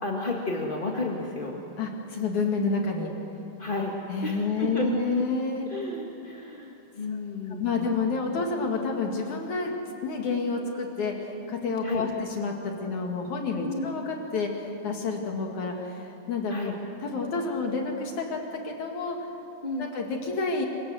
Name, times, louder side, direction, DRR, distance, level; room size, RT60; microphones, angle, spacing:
voice 1, 0.0-1.6 3.6-3.9 4.2-4.9 5.7-7.9 8.3-8.4 11.8-12.0 13.6-13.9 16.5-16.7 19.6-19.9, left 2 dB, 20° left, -1 dB, 1.4 m, -32 dB
voice 2, 1.8-3.1 4.1-5.7 7.1-7.2 7.6-9.7 10.0-16.5 17.0-19.2 19.8-20.7, left 4 dB, 70° left, 1 dB, 3.4 m, -29 dB
27.5 x 26.0 x 7.8 m, 3.0 s
omnidirectional pair, 3.6 m